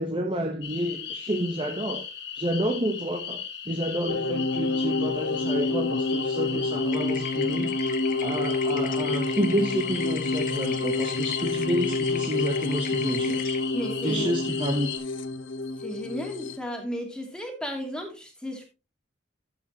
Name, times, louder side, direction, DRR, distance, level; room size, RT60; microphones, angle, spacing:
voice 1, 0.0-2.1 2.4-7.7 8.2-13.5 14.0-14.9, right 1 dB, 25° right, 1.1 m, -29 dB
sound 1, 0.6-15.0, left 8 dB, 60° left, 2.3 m, -37 dB
sound 2, 4.1-16.6, left 3 dB, 85° left, 0.9 m, -28 dB
sound 3, 6.9-13.6, left 8 dB, 45° left, 1.1 m, -40 dB
voice 2, 13.7-14.3 15.8-18.7, equal, 5° left, 2.5 m, -34 dB
12.0 x 7.9 x 3.0 m
head